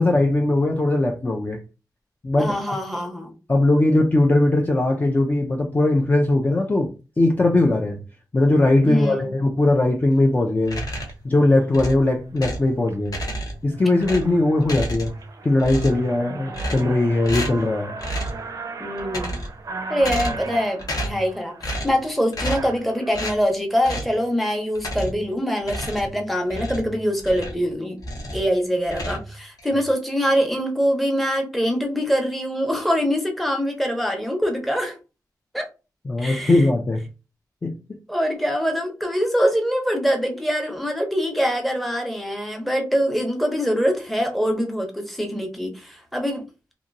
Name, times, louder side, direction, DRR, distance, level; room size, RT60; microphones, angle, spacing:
voice 1, 0.0-1.6 2.2-2.8 3.5-6.9 7.2-8.0 8.3-10.8 11.2-13.2 13.6-15.1 15.4-18.0 36.1-37.1 37.6-37.7, left 2 dB, 25° left, 0.4 m, -19 dB
voice 2, 2.4-3.3 8.9-9.3 18.8-19.3 19.9-28.0 28.3-35.0 35.5-35.7 36.2-36.6 38.1-46.4, equal, ahead, 0.7 m, -24 dB
sound 1, 10.6-11.3 11.7-12.7 13.1-13.7 14.0-15.3 15.6-16.1 16.5-17.0 17.2-17.7 18.0-18.4 19.0-19.6 20.0-20.5 20.8-21.3 21.6-22.0 22.3-22.8 23.1-23.4 23.8-24.2 24.8-25.3 25.6-27.7 28.0-28.5 28.8-29.7, equal, 55° left, 0.9 m, -30 dB
sound 2, 10.9-11.1 11.8-12.0 12.5-13.0 13.4-13.5 13.7-23.1, right 4 dB, 50° right, 0.5 m, -37 dB
2.8 x 2.5 x 2.5 m
wide cardioid pair, 115°, 7 cm